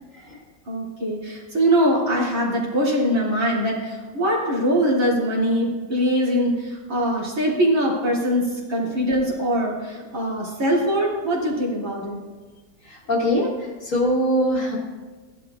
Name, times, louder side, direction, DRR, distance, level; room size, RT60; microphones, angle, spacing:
voice 1, 0.7-12.2, equal, 45° right, -5 dB, 2.8 m, -22 dB
voice 2, 12.8-14.8, equal, 45° left, -2 dB, 1.8 m, -23 dB
16.5 x 11.0 x 2.4 m, 1.3 s
omnidirectional pair, 2.0 m